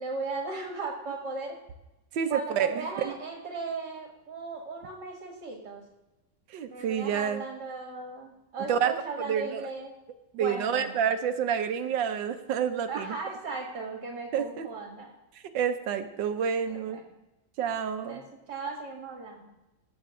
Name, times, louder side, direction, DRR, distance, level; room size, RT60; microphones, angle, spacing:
voice 1, 0.0-1.6 2.3-5.8 6.7-9.9 10.3-11.0 12.9-15.1 16.7-17.0 18.0-19.5, right 3 dB, 70° right, 0 dB, 2.4 m, -37 dB
voice 2, 2.1-3.1 6.5-7.4 8.7-9.6 10.4-13.1 14.3-14.7 15.5-17.0 17.6-18.2, right 8 dB, 85° right, 8 dB, 1.6 m, -29 dB
18.0 x 8.0 x 3.7 m, 1.0 s
omnidirectional pair, 2.0 m